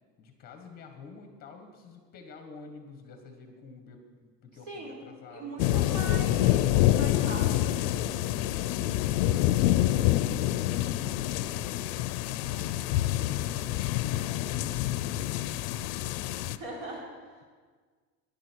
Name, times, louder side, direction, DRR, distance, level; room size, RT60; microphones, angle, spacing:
voice 1, 0.2-5.5 9.2-15.2, left 4 dB, 30° left, 5 dB, 1.6 m, -49 dB
voice 2, 4.7-5.0 5.3-7.9 16.4-17.4, right 2 dB, 65° right, -3 dB, 4.6 m, -40 dB
sound 1, 5.6-16.6, left 14 dB, 65° left, 0.6 m, -27 dB
18.5 x 11.0 x 4.7 m, 1.5 s
cardioid pair, 180°, 31 cm